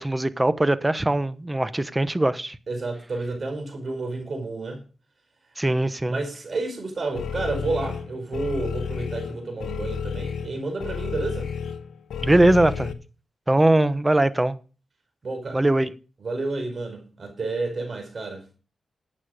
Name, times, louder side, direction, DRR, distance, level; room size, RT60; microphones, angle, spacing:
voice 1, 0.0-2.6 5.6-6.2 12.2-12.9 13.5-14.6 15.5-15.9, right 1 dB, 20° right, 1.1 m, -21 dB
voice 2, 2.7-4.8 6.1-11.5 15.2-15.6 16.2-18.4, right 3 dB, 55° right, 4.9 m, -30 dB
sound 1, 7.2-12.9, left 6 dB, 85° left, 1.0 m, -31 dB
11.5 x 8.6 x 5.1 m
cardioid pair, 60°, 0 cm